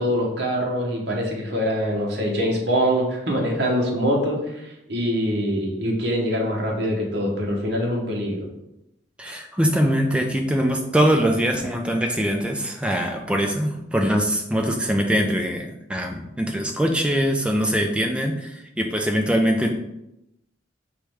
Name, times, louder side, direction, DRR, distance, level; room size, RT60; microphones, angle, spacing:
voice 1, 0.0-4.4 4.6-8.5, equal, 60° right, -1 dB, 1.1 m, -24 dB
voice 2, 9.2-19.7, equal, 5° right, 2 dB, 0.4 m, -22 dB
4.7 x 3.1 x 3.4 m, 0.87 s
head